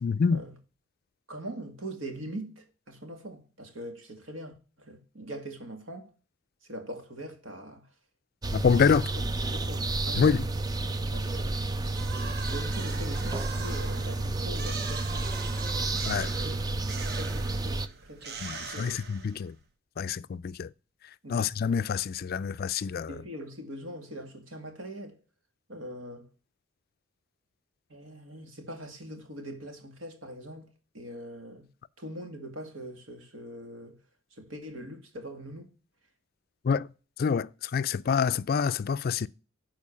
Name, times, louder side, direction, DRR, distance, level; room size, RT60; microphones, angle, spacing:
voice 1, 0.0-0.4 8.5-9.1 10.2-10.5 16.1-16.3 18.4-19.5 20.0-20.7 21.3-23.1 36.6-36.9 37.2-39.3, left 6 dB, 50° left, 0.4 m, -26 dB
voice 2, 1.3-6.1 6.7-7.9 8.9-9.0 9.5-10.3 11.1-11.6 12.4-15.3 16.2-16.7 17.1-19.0 21.2-21.4 23.1-25.2 25.7-26.3 27.9-31.7 32.0-34.0 34.3-35.7, right 1 dB, 75° right, 2.2 m, -42 dB
sound 1, 8.4-17.9, right 2 dB, 20° right, 0.5 m, -31 dB
sound 2, 11.9-19.6, right 5 dB, 55° right, 1.1 m, -42 dB
12.5 x 4.5 x 5.6 m
head